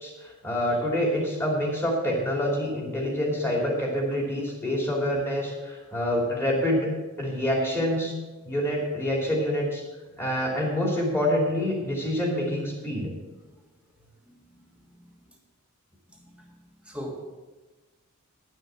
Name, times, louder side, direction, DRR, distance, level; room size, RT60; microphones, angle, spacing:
voice 1, 0.0-6.9 7.2-8.1 8.4-9.8 10.2-13.1, equal, 10° left, -2 dB, 2.7 m, -26 dB
voice 2, 14.3-15.1 16.1-16.6 16.8-17.2, equal, 5° right, -1 dB, 1.5 m, -42 dB
11.0 x 6.4 x 7.5 m, 1.2 s
head